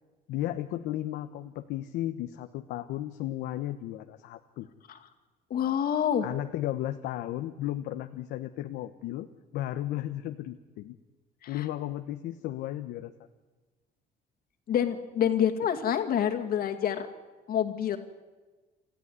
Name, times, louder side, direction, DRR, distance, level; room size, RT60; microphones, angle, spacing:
voice 1, 0.3-4.7 6.2-9.3 9.5-10.9 11.5-13.1, left 13 dB, 85° left, 8 dB, 1.0 m, -34 dB
voice 2, 5.5-6.3 11.4-11.7 14.7-17.1 17.5-18.0, left 9 dB, 60° left, 6 dB, 2.3 m, -27 dB
27.0 x 14.5 x 9.5 m, 1.3 s
cardioid pair, 110°, 17 cm